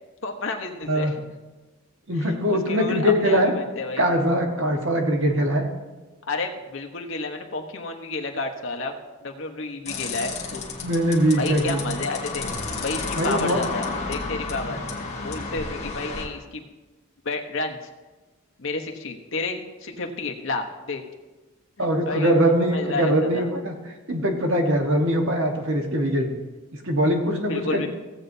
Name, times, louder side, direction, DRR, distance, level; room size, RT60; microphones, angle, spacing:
voice 1, 0.2-1.1 2.1-4.0 6.2-10.6 11.4-12.5 12.8-14.8 15.2-16.7 17.2-17.8 18.6-21.0 21.8-23.5 27.5-27.9, left 3 dB, 60° left, 2 dB, 1.0 m, -31 dB
voice 2, 0.9-1.2 2.1-3.5 4.0-5.6 10.8-11.8 13.2-13.7 14.7-14.8 21.8-23.7 24.1-26.3 26.7-27.9, equal, 60° right, 2 dB, 1.3 m, -22 dB
sound 1, 9.9-16.3, left 3 dB, 30° left, 1.3 m, -32 dB
16.0 x 7.8 x 2.7 m, 1.2 s
head